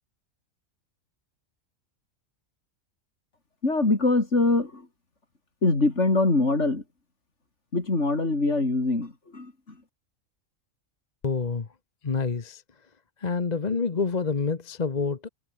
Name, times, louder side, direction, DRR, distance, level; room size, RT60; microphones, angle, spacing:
voice 1, 3.6-4.9 5.6-6.8 7.7-9.8, left 2 dB, 60° left, 4.1 m, -23 dB
voice 2, 11.2-11.7 12.0-12.6 13.2-15.3, left 4 dB, 35° left, 1.1 m, -27 dB
omnidirectional pair, 1.4 m